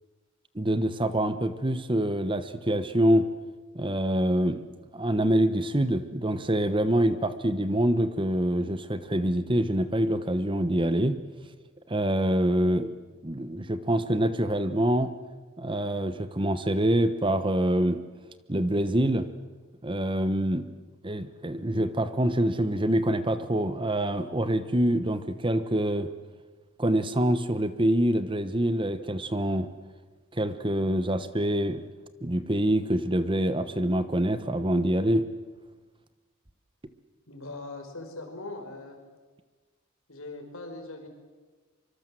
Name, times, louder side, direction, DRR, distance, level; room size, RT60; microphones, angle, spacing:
voice 1, 0.5-3.3 3.7-4.6 4.9-11.2 11.9-12.9 13.2-15.1 15.6-18.0 18.5-19.3 19.8-20.7 21.0-26.1 26.8-29.7 30.3-31.8 32.2-35.2, right 1 dB, 25° right, 12 dB, 1.1 m, -25 dB
voice 2, 37.3-39.0 40.1-41.1, left 2 dB, 70° left, 4 dB, 5.2 m, -40 dB
25.0 x 24.5 x 7.6 m, 1.3 s
head